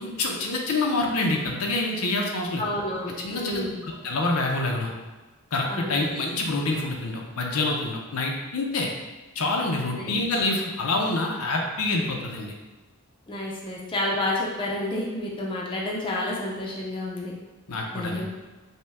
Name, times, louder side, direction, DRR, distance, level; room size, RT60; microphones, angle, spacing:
voice 1, 0.0-2.6 3.2-4.9 5.5-8.9 9.3-12.5 17.7-18.3, left 2 dB, 80° left, 0 dB, 0.7 m, -27 dB
voice 2, 2.6-3.8 5.7-5.9 9.9-10.1 13.3-17.3 17.9-18.3, left 1 dB, 20° left, -4 dB, 0.6 m, -30 dB
5.3 x 2.2 x 3.4 m, 1.2 s
head